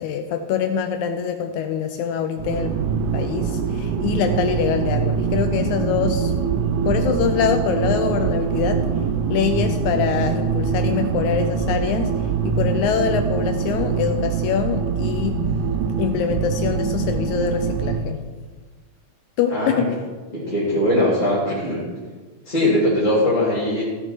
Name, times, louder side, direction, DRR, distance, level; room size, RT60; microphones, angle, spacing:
voice 1, 0.0-2.7 3.1-6.3 6.9-8.8 9.3-12.1 12.4-15.4 16.0-18.2 19.4-20.0, left 8 dB, 80° left, 7 dB, 1.9 m, -24 dB
sound 1, 2.4-18.0, right 6 dB, 75° right, 2.0 m, -23 dB
voice 2, 19.5-19.9 20.3-21.8 22.4-23.8, left 1 dB, 15° left, -10 dB, 2.5 m, -20 dB
15.0 x 6.6 x 4.6 m, 1.4 s
omnidirectional pair, 3.7 m